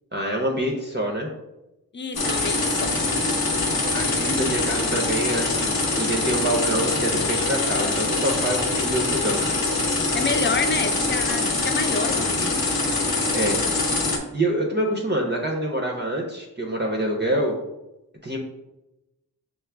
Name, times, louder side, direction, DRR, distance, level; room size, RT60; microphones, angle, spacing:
voice 1, 0.1-1.3 3.9-9.4 13.3-13.6 14.3-17.6 18.2-18.4, right 1 dB, 25° right, 0 dB, 0.7 m, -26 dB
voice 2, 1.9-3.0 10.1-12.8, left 4 dB, 30° left, 7 dB, 0.4 m, -28 dB
sound 1, 2.1-14.2, left 3 dB, 65° left, 0.8 m, -24 dB
5.9 x 2.1 x 3.3 m, 0.94 s
wide cardioid pair, 65°, 39 cm